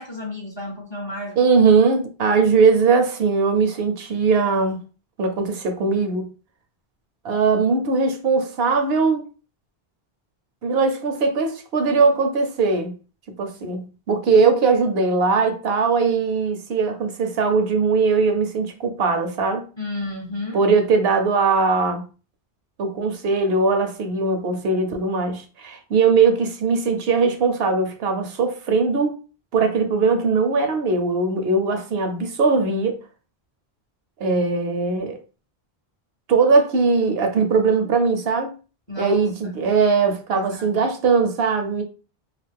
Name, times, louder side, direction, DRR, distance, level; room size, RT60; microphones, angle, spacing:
voice 1, 0.0-1.7 19.8-20.6 38.9-39.6 40.3-40.7, left 2 dB, 35° left, 0.6 m, -33 dB
voice 2, 1.4-4.8 5.2-6.3 7.2-9.2 10.6-12.9 13.4-19.6 20.5-22.1 22.8-29.1 29.5-33.0 34.2-35.2 36.3-38.5 39.0-41.8, right 4 dB, 75° right, 0.8 m, -20 dB
2.4 x 2.4 x 3.3 m
omnidirectional pair, 1.0 m